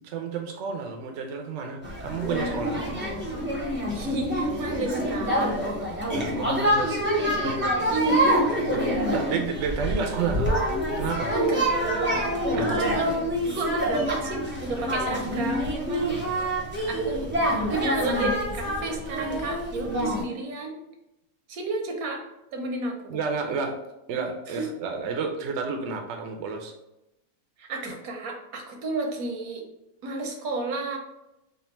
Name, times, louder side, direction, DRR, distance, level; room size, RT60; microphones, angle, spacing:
voice 1, 0.0-2.8 6.1-7.0 7.4-7.5 8.7-8.8 9.1-10.5 11.0-11.3 12.5-12.9 16.0-16.2 23.1-23.8 24.1-26.7, right 5 dB, 65° right, 3 dB, 0.8 m, -31 dB
sound 1, 1.8-20.2, equal, 10° right, 0.7 m, -26 dB
voice 2, 3.9-5.6 7.0-7.3 7.9-8.6 11.3-11.7 12.6-16.4 16.9-17.3 17.6-20.8 21.5-22.2 22.5-23.2 24.5-24.7 27.6-29.6 30.0-31.0, right 2 dB, 85° right, 3 dB, 1.2 m, -31 dB
3.3 x 2.4 x 4.2 m, 0.90 s
omnidirectional pair, 1.5 m